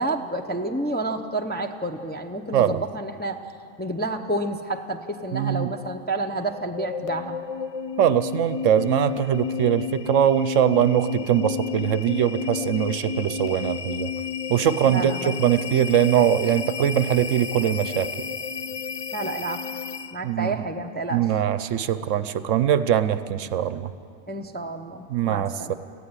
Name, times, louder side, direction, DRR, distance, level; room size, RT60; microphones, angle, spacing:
voice 1, 0.0-3.4 3.8-7.4 14.9-15.4 19.1-19.6 20.1-21.2 24.3-25.7, right 2 dB, 10° left, 4 dB, 0.5 m, -29 dB
voice 2, 5.3-5.7 8.0-14.1 14.5-18.1 20.2-20.7 21.1-23.9 25.1-25.7, right 10 dB, 70° right, 13 dB, 1.0 m, -22 dB
sound 1, 6.4-20.3, left 6 dB, 65° left, 0.3 m, -32 dB
18.0 x 15.0 x 9.7 m, 2.4 s
omnidirectional pair, 1.4 m